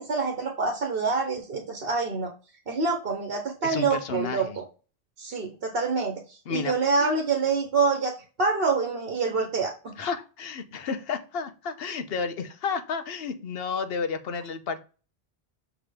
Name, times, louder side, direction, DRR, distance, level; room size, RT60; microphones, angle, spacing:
voice 1, 0.0-2.3 2.7-4.6 5.2-6.2 6.5-8.1 8.4-9.7, right 4 dB, 65° right, 3 dB, 1.3 m, -26 dB
voice 2, 3.6-4.6 6.5-6.7 10.0-14.8, left 5 dB, 70° left, 9 dB, 0.9 m, -31 dB
7.2 x 3.0 x 5.0 m, 0.35 s
omnidirectional pair, 1.1 m